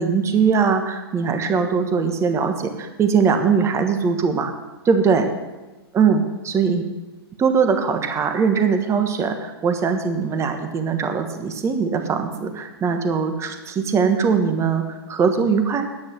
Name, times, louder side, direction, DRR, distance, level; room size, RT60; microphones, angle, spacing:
voice 1, 0.0-4.5 4.8-5.3 5.9-6.8 7.4-15.9, right 5 dB, 20° right, 6 dB, 1.4 m, -21 dB
10.5 x 9.3 x 6.3 m, 1.1 s
hypercardioid pair, 125°, 13 cm